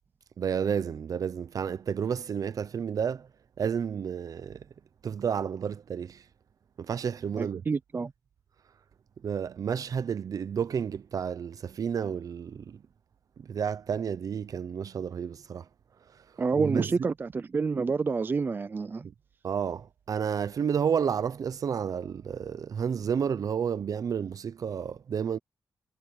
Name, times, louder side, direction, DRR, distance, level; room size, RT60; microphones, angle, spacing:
voice 1, 0.4-3.3 3.6-4.6 5.0-6.2 6.8-7.6 9.2-12.8 13.4-15.6 16.6-16.9 19.4-25.4, right 7 dB, 65° right, 0.8 m, -31 dB
voice 2, 7.4-8.1 16.4-19.1, right 4 dB, 30° right, 0.4 m, -28 dB
wide cardioid pair, 140°, 7 cm